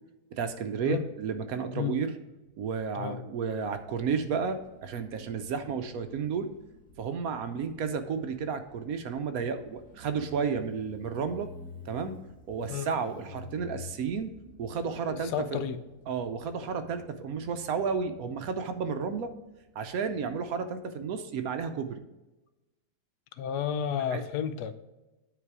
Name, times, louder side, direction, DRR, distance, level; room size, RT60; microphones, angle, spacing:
voice 1, 0.3-2.1 2.6-6.5 7.0-11.5 11.9-12.1 12.5-14.3 14.6-15.3 16.1-19.3 19.8-22.0 24.1-24.2, right 6 dB, 70° right, 8 dB, 1.1 m, -32 dB
Motorcycle, 3.6-20.8, left 2 dB, 5° left, 1.3 m, -51 dB
voice 2, 15.1-15.8 23.3-24.7, left 8 dB, 80° left, 11 dB, 1.2 m, -32 dB
9.2 x 4.1 x 4.7 m, 1.1 s
omnidirectional pair, 1.7 m